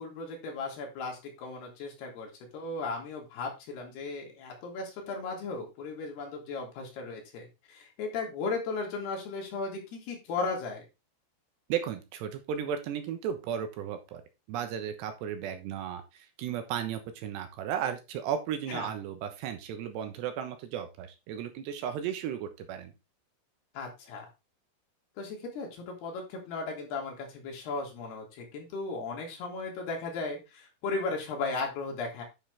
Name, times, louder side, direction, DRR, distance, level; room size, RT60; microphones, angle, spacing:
voice 1, 0.0-10.9 18.7-18.9 23.7-24.3 25.2-32.2, left 3 dB, 70° left, 0 dB, 4.3 m, -36 dB
voice 2, 11.7-14.2 14.5-16.0 16.4-22.9, right 9 dB, 80° right, 8 dB, 3.2 m, -34 dB
10.0 x 6.3 x 3.5 m, 0.25 s
omnidirectional pair, 5.0 m